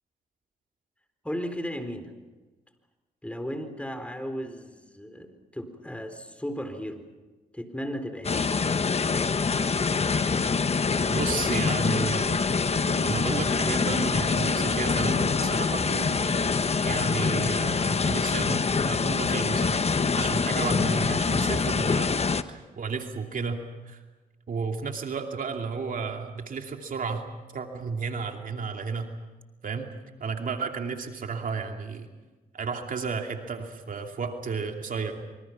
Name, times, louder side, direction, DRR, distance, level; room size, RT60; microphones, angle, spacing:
voice 1, 1.2-2.1 3.2-7.1 7.5-8.4, equal, 5° left, 8 dB, 4.2 m, -35 dB
sound 1, 8.2-22.4, left 5 dB, 40° left, 1.3 m, -25 dB
sound 2, 11.0-16.6, right 7 dB, 85° right, 3.6 m, -42 dB
voice 2, 11.1-12.4 13.0-15.8 16.8-19.9 20.1-22.1 22.5-24.0 24.5-27.3 27.5-29.1 29.6-29.9 30.2-32.1 32.5-35.2, right 5 dB, 60° right, 4 dB, 2.7 m, -32 dB
26.0 x 25.0 x 6.0 m, 1.2 s
supercardioid pair, 55°, 16 cm